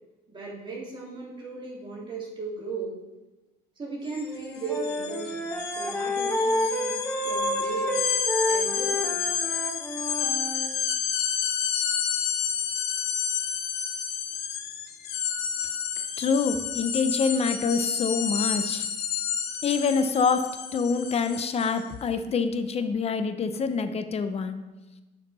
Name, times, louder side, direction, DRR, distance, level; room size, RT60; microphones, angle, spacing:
voice 1, 0.3-3.0 3.8-7.0 7.2-7.9 8.5-9.1, right 4 dB, 30° right, -6 dB, 3.0 m, -36 dB
sound 1, 4.1-4.2 4.5-21.8, left 7 dB, 75° left, 0.9 m, -30 dB
Wind instrument woodwind instrument, 4.3-10.7, left 1 dB, 10° left, 1.2 m, -29 dB
voice 2, 16.2-18.9 19.6-24.6, left 5 dB, 40° left, 9 dB, 0.8 m, -26 dB
10.5 x 5.8 x 4.2 m, 1.1 s
cardioid pair, 110°, 17 cm